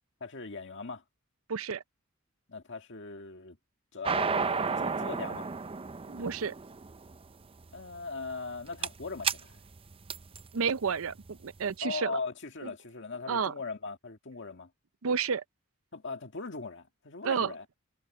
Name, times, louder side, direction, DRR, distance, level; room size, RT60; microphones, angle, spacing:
voice 1, 0.2-1.0 2.5-3.6 3.9-5.5 7.7-9.6 11.8-14.7 15.9-17.7, left 4 dB, 60° left, 1.9 m, -39 dB
voice 2, 1.5-1.8 6.0-6.5 10.5-12.2 12.6-12.7 13.3-13.5 15.0-15.4 17.2-17.5, right 6 dB, 80° right, 0.6 m, -31 dB
sound 1, 4.0-11.6, right 5 dB, 25° right, 0.6 m, -33 dB
head